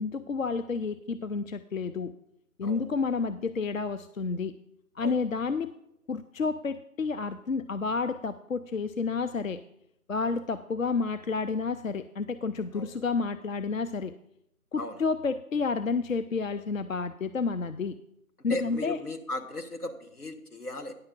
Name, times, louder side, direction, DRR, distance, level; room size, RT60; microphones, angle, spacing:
voice 1, 0.0-2.1 2.6-4.5 5.0-5.7 6.1-9.6 10.1-14.1 14.7-18.0 18.4-19.0, left 4 dB, 65° left, 11 dB, 0.5 m, -30 dB
voice 2, 18.5-20.9, left 1 dB, 85° left, 6 dB, 1.5 m, -36 dB
9.9 x 6.8 x 5.2 m, 0.79 s
figure-of-eight pair, 165°, 44 cm